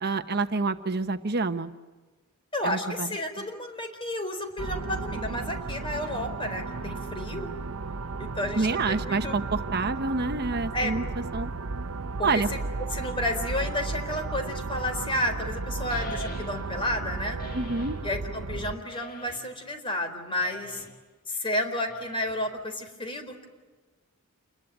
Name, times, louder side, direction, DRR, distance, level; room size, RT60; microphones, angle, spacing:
voice 1, 0.0-1.7 2.6-3.1 8.5-11.0 11.3-11.5 12.2-12.5 17.5-18.0, right 3 dB, 50° right, 8 dB, 1.1 m, -27 dB
voice 2, 2.5-7.5 8.2-9.4 10.7-10.9 12.2-12.6 12.9-17.4 18.0-20.9 21.3-23.5, left 1 dB, 25° left, 6 dB, 4.2 m, -31 dB
sound 1, 4.6-18.7, right 3 dB, 75° right, 0.9 m, -34 dB
sound 2, 15.9-16.8 17.4-18.1 18.9-19.6 20.4-21.0 21.9-22.6, equal, 45° left, 2.4 m, -42 dB
29.0 x 21.5 x 9.2 m, 1.3 s
head